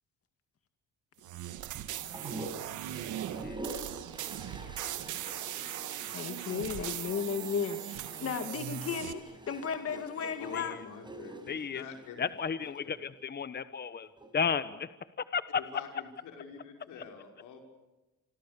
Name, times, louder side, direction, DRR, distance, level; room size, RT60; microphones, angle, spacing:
sound 1, 1.2-9.1, right 12 dB, 85° right, 1.6 m, -39 dB
voice 1, 2.0-2.4 6.1-10.8, left 6 dB, 50° left, 7 dB, 2.3 m, -35 dB
sound 2, 2.1-12.8 14.0-14.6, right 1 dB, 15° right, 6.3 m, -46 dB
voice 2, 2.9-3.6 10.5-10.8 11.5-11.8 12.2-14.9 15.3-15.6 17.0-17.1, left 6 dB, 35° left, 13 dB, 1.1 m, -34 dB
voice 3, 10.4-12.2 12.8-12.9 15.5-17.6, left 6 dB, 85° left, 3 dB, 6.0 m, -46 dB
28.0 x 26.5 x 7.0 m, 1.1 s
cardioid pair, 90°, 30 cm